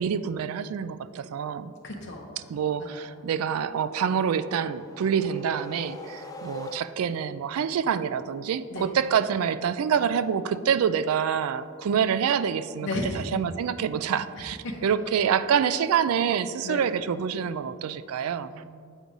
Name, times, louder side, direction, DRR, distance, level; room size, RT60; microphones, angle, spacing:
voice 1, 0.0-1.7 2.5-18.5, right 7 dB, 90° right, 14 dB, 0.3 m, -26 dB
voice 2, 1.8-2.2 2.8-3.1 8.7-8.9 12.8-13.2 14.6-14.7 16.6-16.8 18.5-18.7, left 2 dB, 55° left, -2 dB, 0.7 m, -33 dB
sound 1, 4.4-7.3, left 2 dB, 15° left, 0.4 m, -42 dB
8.1 x 4.7 x 4.0 m, 2.2 s
head